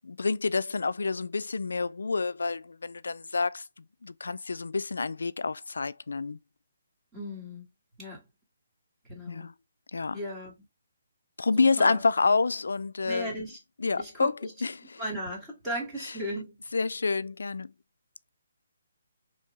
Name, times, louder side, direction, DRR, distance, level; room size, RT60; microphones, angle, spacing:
voice 1, 0.0-3.6 4.0-6.4 9.3-9.5 9.9-10.2 11.4-13.3 13.8-14.3 14.6-14.7 16.7-17.7, left 4 dB, 90° left, 0.3 m, -28 dB
voice 2, 7.1-7.7 8.0-8.2 9.1-9.5 10.1-10.5 11.6-12.0 13.0-13.6 14.0-14.5 15.0-16.6, equal, 10° right, 1.6 m, -36 dB
4.6 x 3.0 x 3.1 m
hypercardioid pair, 170°, 0 cm